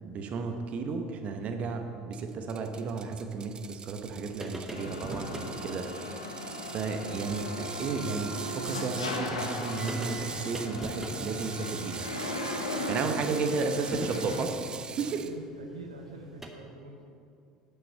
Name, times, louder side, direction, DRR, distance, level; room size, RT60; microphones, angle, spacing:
voice 1, 0.0-6.2 6.7-12.1 12.9-14.5 15.0-15.3, right 4 dB, 45° right, 6 dB, 0.9 m, -33 dB
Ratchet pawl, 2.1-15.3, right 6 dB, 25° right, 0.4 m, -42 dB
sound 1, 4.4-5.6 7.1-7.2 7.6-7.7 9.2-9.3 9.6-16.5, right 1 dB, 10° right, 1.1 m, -43 dB
sound 2, 4.7-14.4, left 2 dB, 85° left, 0.8 m, -37 dB
voice 2, 5.1-5.5 15.2-17.2, right 2 dB, 85° right, 2 dB, 0.7 m, -46 dB
8.4 x 5.9 x 6.6 m, 2.4 s
figure-of-eight pair, 70°, 3 cm